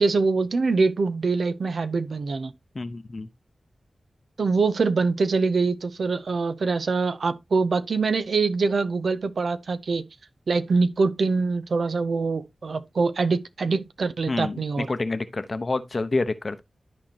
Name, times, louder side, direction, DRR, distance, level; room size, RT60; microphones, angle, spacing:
voice 1, 0.0-2.5 4.4-10.1 10.5-14.9, right 4 dB, 75° right, 0.6 m, -24 dB
voice 2, 2.7-3.3 14.3-16.6, left 3 dB, 50° left, 0.9 m, -28 dB
12.5 x 4.4 x 2.8 m
wide cardioid pair, 65°, 0 cm